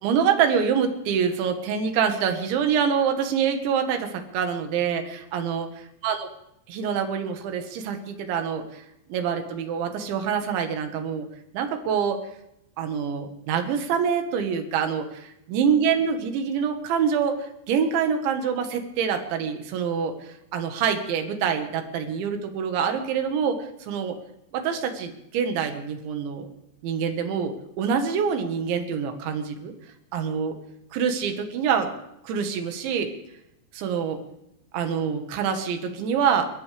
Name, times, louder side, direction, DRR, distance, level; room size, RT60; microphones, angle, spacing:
voice 1, 0.0-5.7 6.0-6.3 6.7-8.8 9.1-12.2 12.8-24.2 24.5-26.5 26.8-29.7 30.1-30.6 30.9-31.9 32.2-33.1 33.7-34.2 34.7-36.5, right 7 dB, 70° right, 5 dB, 3.7 m, -26 dB
29.5 x 13.5 x 3.4 m, 0.81 s
omnidirectional pair, 5.8 m